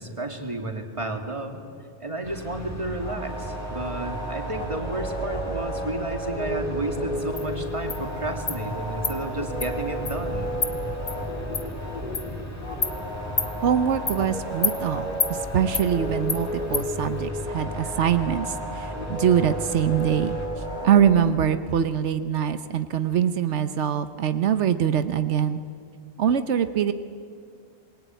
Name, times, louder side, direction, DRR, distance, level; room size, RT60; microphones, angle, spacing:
voice 1, 0.0-1.6 2.0-10.5, right 2 dB, 25° right, 4 dB, 2.6 m, -32 dB
sound 1, 2.2-20.5, equal, 15° left, 3.5 m, -37 dB
sound 2, 3.0-21.3, equal, 40° left, 3.7 m, -33 dB
Insect, 7.4-7.5 7.9-8.0 8.5-8.6 9.0-9.2 9.6-9.7 10.1-10.2 10.6-10.7 11.1-11.2 11.5-11.6 12.1-12.3 12.8-12.9 13.4-13.5 14.1-14.2 14.6-14.8 15.2-15.3 15.7-15.9 16.3-16.4 16.7-16.9, left 5 dB, 60° left, 1.7 m, -26 dB
voice 2, 13.6-20.4 20.8-25.6 26.2-26.9, right 9 dB, 90° right, 11 dB, 1.2 m, -23 dB
26.0 x 22.0 x 9.2 m, 2.2 s
omnidirectional pair, 1.2 m